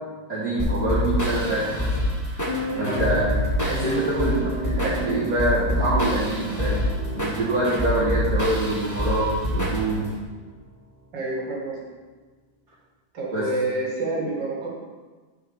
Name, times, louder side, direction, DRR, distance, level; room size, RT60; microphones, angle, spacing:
voice 1, 0.3-2.1 2.4-3.3 3.5-10.1 13.3-13.5, right 1 dB, 50° right, -10 dB, 2.1 m, -25 dB
sound 1, 0.6-10.1, left 1 dB, 10° left, 1.0 m, -26 dB
sound 2, 2.5-10.6, equal, 40° left, 1.1 m, -35 dB
voice 2, 11.1-11.8 13.1-14.7, right 2 dB, 75° right, -4 dB, 2.7 m, -28 dB
11.0 x 5.5 x 3.6 m, 1.3 s
omnidirectional pair, 2.0 m